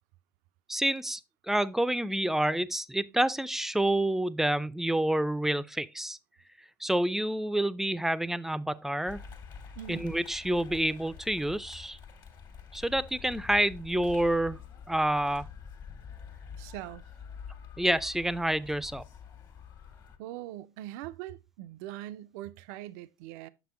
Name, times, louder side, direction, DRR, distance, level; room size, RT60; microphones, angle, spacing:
voice 1, 0.7-1.2 1.5-6.2 6.8-9.2 9.9-12.0 12.7-14.6 14.9-15.5 17.8-19.0, right 1 dB, 5° right, 0.4 m, -28 dB
sound 1, 9.1-20.2, left 7 dB, 45° left, 1.4 m, -47 dB
voice 2, 9.8-10.1 16.6-17.1 20.2-23.5, right 13 dB, 70° right, 0.4 m, -42 dB
6.7 x 6.0 x 3.1 m
hypercardioid pair, 70°, 10 cm